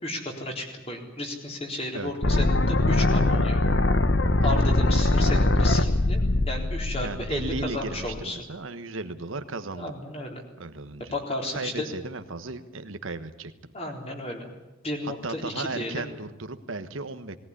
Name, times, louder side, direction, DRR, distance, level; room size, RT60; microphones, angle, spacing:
voice 1, 0.0-3.6 4.4-6.2 6.5-8.4 9.8-10.4 11.1-11.9 13.7-14.5 14.8-16.1, left 1 dB, 30° left, 2 dB, 3.9 m, -33 dB
sound 1, 2.2-8.2, left 2 dB, 55° left, 1.1 m, -22 dB
voice 2, 4.4-4.7 7.0-9.9 10.6-11.1 11.5-13.5 15.0-17.4, right 3 dB, 75° right, 9 dB, 1.3 m, -35 dB
20.0 x 18.0 x 10.0 m, 0.97 s
head